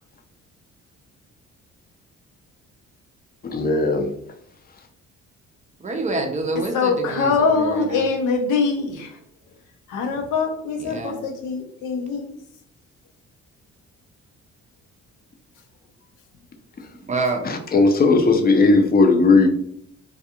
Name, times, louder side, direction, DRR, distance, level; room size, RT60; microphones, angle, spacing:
voice 1, 3.4-4.1 17.5-19.5, left 3 dB, 30° left, 0.5 m, -17 dB
voice 2, 5.8-8.1 10.8-11.2 17.1-17.4, right 3 dB, 25° right, 0.5 m, -27 dB
voice 3, 6.6-9.2 9.9-12.4, left 4 dB, 90° left, 0.6 m, -23 dB
2.3 x 2.3 x 2.8 m
cardioid pair, 90°, 30 cm